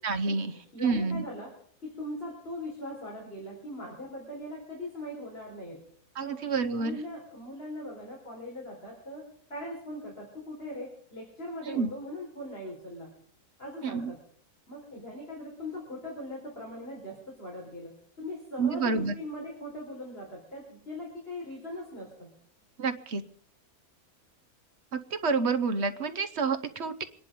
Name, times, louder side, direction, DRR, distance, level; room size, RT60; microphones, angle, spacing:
voice 1, 0.0-0.5 0.8-1.2 6.2-7.0 11.7-11.9 13.8-14.1 18.6-19.1 22.8-23.2 24.9-27.0, right 4 dB, 50° right, 10 dB, 1.0 m, -28 dB
voice 2, 0.7-1.5 1.8-5.8 6.2-9.2 9.5-13.1 13.6-14.2 14.7-22.3, left 1 dB, 40° left, -3 dB, 4.8 m, -40 dB
24.5 x 10.5 x 5.3 m, 0.62 s
omnidirectional pair, 1.6 m